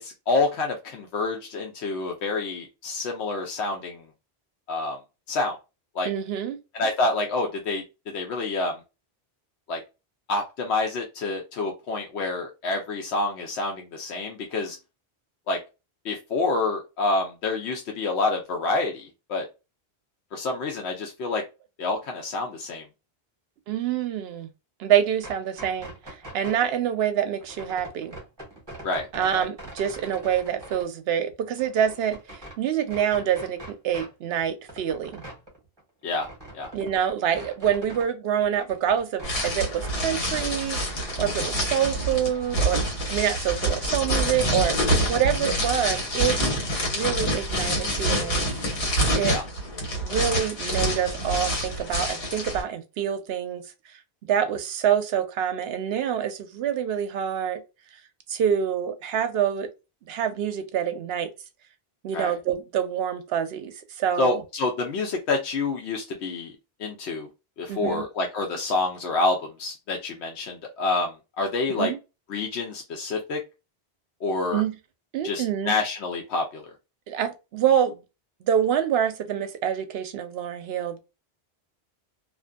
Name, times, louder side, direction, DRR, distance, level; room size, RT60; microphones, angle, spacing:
voice 1, 0.0-4.0 4.7-5.0 5.3-5.6 5.9-6.1 6.7-7.8 8.1-8.8 9.7-9.8 10.3-14.8 15.5-15.6 16.0-19.5 20.3-21.4 21.8-22.8 28.8-29.1 29.3-29.5 36.0-36.3 36.5-36.7 49.2-49.4 62.1-62.4 64.2-66.5 66.8-67.3 67.6-71.9 72.3-73.4 74.2-74.6 75.2-76.6, left 3 dB, 90° left, 0.9 m, -27 dB
voice 2, 6.0-6.6 23.7-24.5 24.8-28.2 29.1-35.2 36.7-44.8 45.1-48.5 49.1-49.4 50.0-53.6 54.3-57.6 58.3-59.7 60.1-61.3 62.0-64.4 67.7-68.0 71.8-72.0 74.5-74.8 75.1-75.7 77.1-78.0 78.4-81.0, right 9 dB, 75° right, 0.8 m, -26 dB
sound 1, 25.1-26.7 27.4-30.9 31.3-32.6 32.9-34.1 34.4-38.1 38.4-40.0 40.3-41.2, right 1 dB, 25° right, 0.9 m, -43 dB
sound 2, 39.2-52.6, equal, 65° left, 1.4 m, -26 dB
2.5 x 2.5 x 2.2 m
omnidirectional pair, 1.1 m